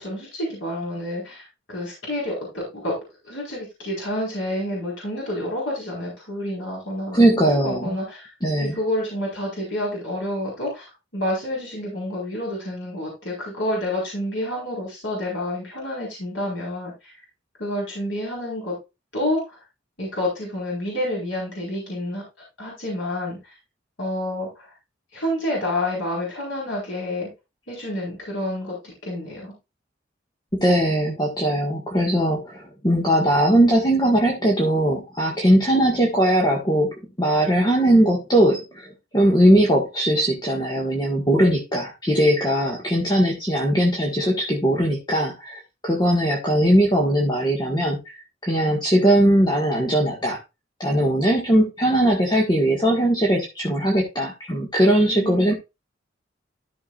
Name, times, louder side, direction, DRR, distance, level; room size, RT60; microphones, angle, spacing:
voice 1, 0.0-3.0 3.2-8.3 8.6-10.8 11.1-17.2 17.6-18.8 19.1-19.6 20.0-22.2 22.6-23.5 24.0-24.7 25.1-27.3 27.7-29.5 55.0-55.5, left 1 dB, 80° left, -3 dB, 4.7 m, -29 dB
voice 2, 7.1-7.9 8.4-8.8 30.5-38.9 39.1-48.1 48.4-50.4 50.8-55.5, right 1 dB, 25° left, -1 dB, 1.8 m, -20 dB
13.5 x 6.3 x 2.5 m, 0.25 s
head